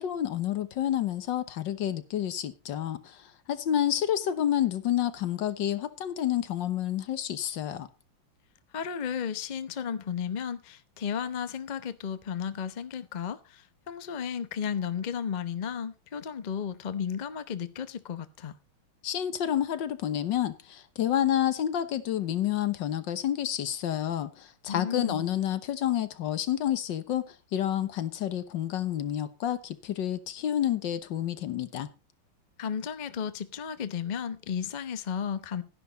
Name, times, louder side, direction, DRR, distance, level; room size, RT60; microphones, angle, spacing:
voice 1, 0.0-7.9 19.0-31.9, left 11 dB, 65° left, 1.6 m, -29 dB
voice 2, 8.7-18.5 24.7-25.3 32.6-35.6, left 7 dB, 85° left, 0.4 m, -34 dB
12.5 x 10.5 x 4.0 m
omnidirectional pair, 2.3 m